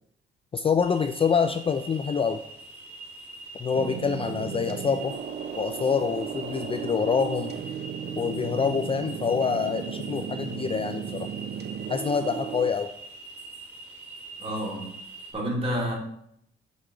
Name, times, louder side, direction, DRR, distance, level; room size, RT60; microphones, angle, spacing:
voice 1, 0.5-2.4 3.6-5.2 5.5-7.5 8.1-11.3 11.9-12.9, left 6 dB, 30° left, 8 dB, 0.4 m, -26 dB
sound 1, 0.8-15.3, right 3 dB, 10° right, 2.3 m, -43 dB
sound 2, 3.7-12.7, right 8 dB, 55° right, 0.6 m, -35 dB
voice 2, 14.4-14.9 15.3-15.9, equal, 30° right, -3 dB, 2.5 m, -29 dB
6.5 x 3.5 x 4.6 m, 0.72 s
cardioid pair, 90°, 20 cm